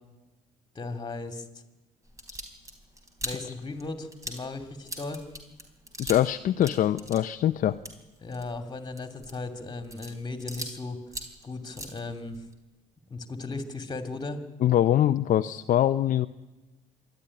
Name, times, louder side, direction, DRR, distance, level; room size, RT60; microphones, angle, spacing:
voice 1, 0.7-1.5 3.2-5.2 8.2-11.0 11.4-12.4 13.1-14.4, left 3 dB, 25° left, 7 dB, 2.7 m, -36 dB
sound 1, 2.0-6.3 6.6-10.8 11.1-12.5, equal, 20° right, 3.9 m, -41 dB
voice 2, 6.0-7.8 14.6-16.3, left 11 dB, 50° left, 9 dB, 0.6 m, -23 dB
26.0 x 12.0 x 10.0 m, 1.1 s
cardioid pair, 110°, 17 cm